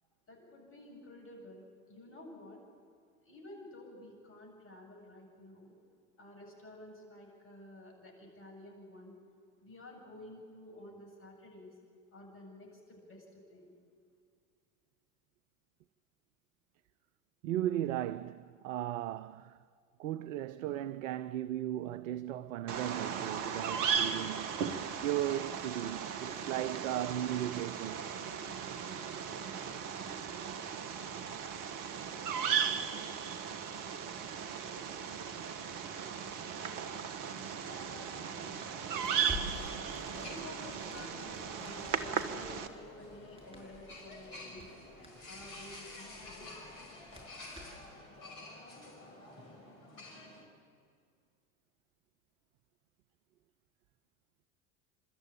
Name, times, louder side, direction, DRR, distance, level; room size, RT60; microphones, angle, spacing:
voice 1, 0.3-2.6 3.2-5.7 6.2-9.1 9.6-11.7 12.1-13.7 40.1-44.7 45.3-46.5, left 1 dB, 30° left, 7.9 m, -52 dB
voice 2, 17.4-19.6 20.0-24.5 25.0-28.1, right 12 dB, 65° right, 0.6 m, -36 dB
Bird vocalization bird call bird song, 22.7-42.7, right 7 dB, 45° right, 1.5 m, -37 dB
sound 1, 37.6-50.4, left 2 dB, 50° left, 6.0 m, -50 dB
Crackle, 39.0-47.9, left 1 dB, 15° right, 6.5 m, -50 dB
28.5 x 13.0 x 8.8 m
figure-of-eight pair, 70°, 42 cm